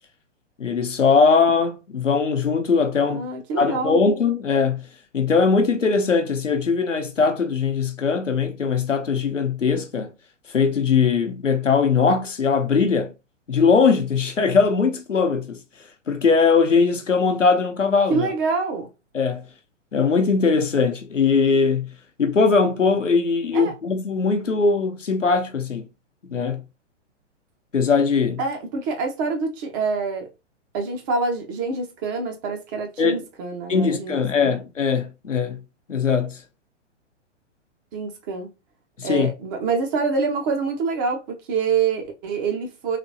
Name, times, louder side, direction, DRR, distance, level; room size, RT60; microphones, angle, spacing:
voice 1, 0.6-3.2 3.6-4.9 5.1-10.1 10.5-13.1 13.5-15.6 16.1-18.3 19.1-19.4 19.9-21.9 22.2-25.9 26.3-26.6 27.7-28.4 33.0-33.2 33.7-35.6 35.9-36.4 39.0-39.3, left 5 dB, 85° left, 0.8 m, -20 dB
voice 2, 3.0-4.0 18.1-18.9 23.5-23.7 28.4-30.3 30.7-34.5 37.9-38.5 39.0-43.0, right 4 dB, 20° right, 0.4 m, -26 dB
3.3 x 3.0 x 2.5 m
figure-of-eight pair, 115°, 36 cm